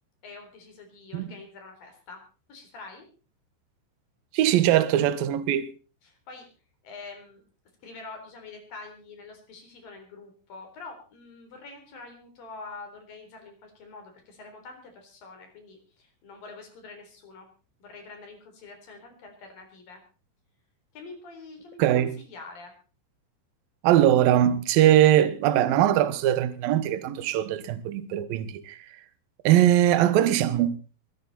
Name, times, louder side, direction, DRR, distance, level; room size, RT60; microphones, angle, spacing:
voice 1, 0.2-2.2 2.5-3.1 6.0-6.5 6.8-7.4 7.8-17.5 17.8-20.0 20.9-22.7, left 3 dB, 45° left, 5.2 m, -45 dB
voice 2, 4.3-5.7 21.8-22.1 23.8-28.9 29.4-30.7, right 12 dB, 70° right, 2.3 m, -21 dB
22.0 x 12.5 x 4.2 m
omnidirectional pair, 5.8 m